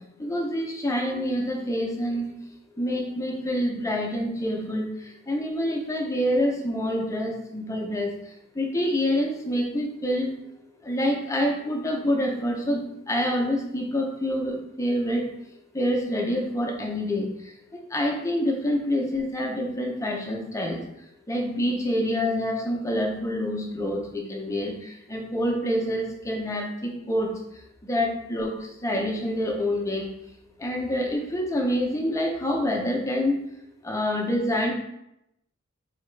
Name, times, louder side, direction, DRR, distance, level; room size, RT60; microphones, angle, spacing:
voice 1, 0.2-2.3 2.8-8.1 8.6-10.3 10.8-15.3 15.7-17.3 17.9-20.8 21.3-27.3 27.8-28.5 28.8-30.1 30.6-33.4 33.8-34.7, equal, 15° left, 0 dB, 0.6 m, -27 dB
4.0 x 2.8 x 3.2 m, 0.81 s
head